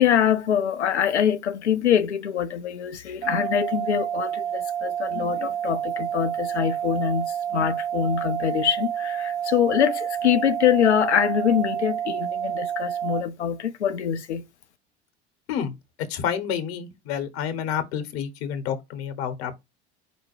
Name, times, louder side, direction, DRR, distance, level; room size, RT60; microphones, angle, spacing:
voice 1, 0.0-14.4, left 9 dB, 85° left, 0.7 m, -24 dB
sound 1, 3.2-13.2, right 9 dB, 25° right, 0.5 m, -29 dB
voice 2, 16.1-19.6, left 8 dB, 65° left, 1.2 m, -29 dB
5.0 x 2.2 x 4.7 m
figure-of-eight pair, 70°, 33 cm